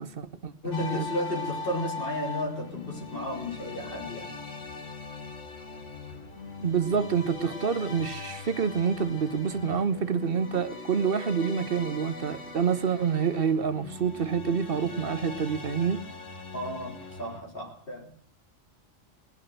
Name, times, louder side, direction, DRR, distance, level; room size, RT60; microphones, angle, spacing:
voice 1, 0.0-1.1 6.6-16.0, right 6 dB, 50° right, 1.1 m, -27 dB
voice 2, 0.6-4.4 16.5-18.1, left 1 dB, 45° left, 4.1 m, -33 dB
sound 1, 0.7-17.4, left 4 dB, 80° left, 1.9 m, -40 dB
19.5 x 6.5 x 7.9 m
omnidirectional pair, 1.3 m